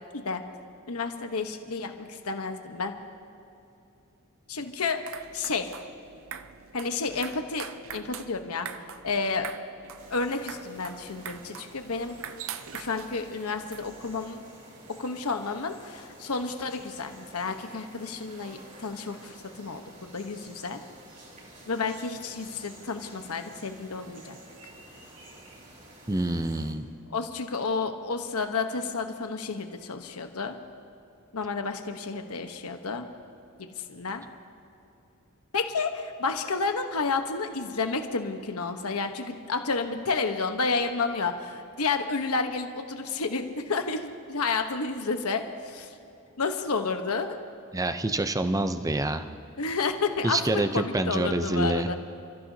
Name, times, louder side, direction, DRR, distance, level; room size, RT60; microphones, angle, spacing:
voice 1, 0.9-3.0 4.5-5.0 5.3-5.7 6.7-7.7 7.9-8.7 9.0-9.5 10.1-12.2 12.5-14.4 15.0-20.8 21.7-24.4 24.6-24.7 27.1-30.6 31.3-33.1 33.6-34.2 35.5-45.9 46.4-47.4 49.6-52.0, left 4 dB, 90° left, 6 dB, 1.1 m, -31 dB
sound 1, 4.8-14.3, right 8 dB, 65° right, 0.6 m, -43 dB
sound 2, 10.0-26.7, right 1 dB, 40° right, 3.5 m, -50 dB
voice 2, 26.1-26.9 47.7-49.2 50.2-51.9, right 2 dB, 15° right, 9 dB, 0.6 m, -26 dB
29.5 x 14.5 x 2.8 m, 2.8 s
head